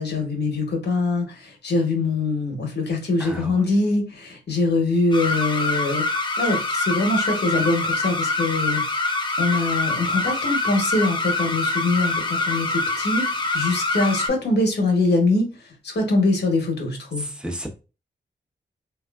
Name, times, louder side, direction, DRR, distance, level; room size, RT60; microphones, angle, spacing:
voice 1, 0.0-15.5 15.8-17.3, left 2 dB, 60° left, 1.0 m, -23 dB
voice 2, 3.2-3.6 17.2-17.7, equal, 5° right, 0.9 m, -32 dB
sound 1, 5.1-14.3, left 2 dB, 25° left, 0.6 m, -25 dB
2.9 x 2.3 x 2.3 m
cardioid pair, 45°, 19 cm